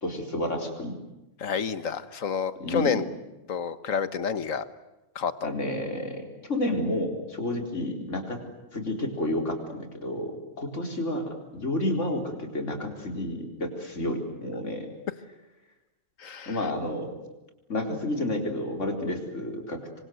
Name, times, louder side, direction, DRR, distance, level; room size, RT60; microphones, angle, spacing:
voice 1, 0.0-1.0 2.6-3.0 5.4-8.4 8.7-14.9 16.4-17.1 17.7-20.0, left 1 dB, 70° left, 4 dB, 4.5 m, -30 dB
voice 2, 1.4-3.0 3.5-4.7 5.1-5.5 16.2-16.7, left 6 dB, 90° left, 13 dB, 1.7 m, -29 dB
27.5 x 24.5 x 7.9 m, 1.0 s
omnidirectional pair, 1.3 m